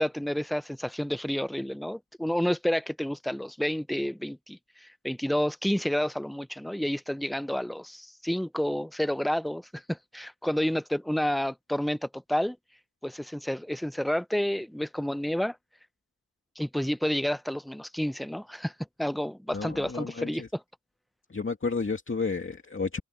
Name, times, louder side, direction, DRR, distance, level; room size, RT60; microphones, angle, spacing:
voice 1, 0.0-12.6 13.0-15.6 16.6-18.7 19.0-20.6, equal, ahead, 0.7 m, -30 dB
voice 2, 19.5-20.5 21.3-23.0, left 4 dB, 40° left, 2.3 m, -31 dB
wide cardioid pair, 65°, 31 cm